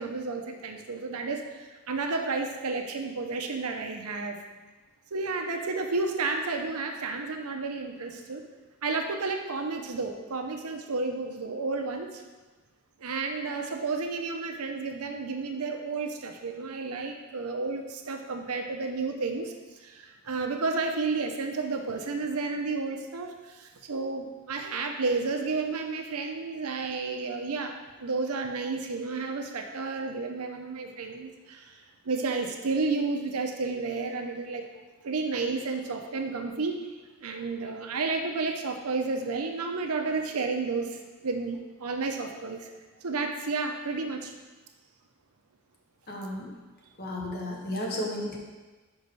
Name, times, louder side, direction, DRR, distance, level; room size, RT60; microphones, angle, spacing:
voice 1, 0.0-4.4 5.1-8.5 8.8-12.2 13.0-19.5 19.8-34.6 35.0-36.8 37.2-42.7 43.0-44.3, right 3 dB, 90° right, 4 dB, 0.7 m, -31 dB
voice 2, 46.1-46.5 47.0-48.4, left 1 dB, 45° left, -1 dB, 1.1 m, -33 dB
5.4 x 4.7 x 5.3 m, 1.3 s
head